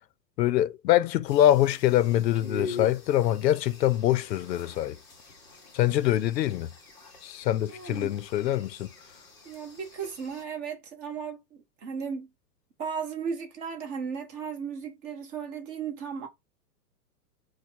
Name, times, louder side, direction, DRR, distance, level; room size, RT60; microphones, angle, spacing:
voice 1, 0.4-5.0 5.7-6.7 7.2-8.9, left 13 dB, 90° left, 0.6 m, -24 dB
sound 1, 1.3-10.4, left 3 dB, 5° left, 0.4 m, -44 dB
voice 2, 7.7-8.2 9.4-12.3 12.8-16.3, right 6 dB, 30° right, 1.1 m, -36 dB
5.2 x 2.2 x 4.5 m
hypercardioid pair, 150°, 49 cm